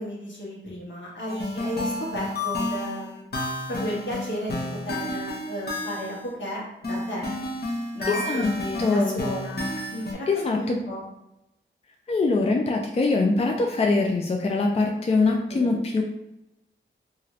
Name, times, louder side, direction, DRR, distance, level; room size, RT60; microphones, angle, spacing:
voice 1, 0.0-3.3 3.7-7.3 7.9-9.6 9.9-11.0 15.2-15.8, equal, 70° left, -4 dB, 1.1 m, -34 dB
sound 1, 1.3-6.3 6.8-10.1, left 2 dB, 55° left, 0.7 m, -31 dB
voice 2, 8.1-8.5 8.8-9.2 10.3-10.8 12.1-16.0, left 3 dB, 30° left, 1 dB, 0.3 m, -23 dB
2.7 x 2.5 x 3.0 m, 0.88 s
wide cardioid pair, 65°, 20 cm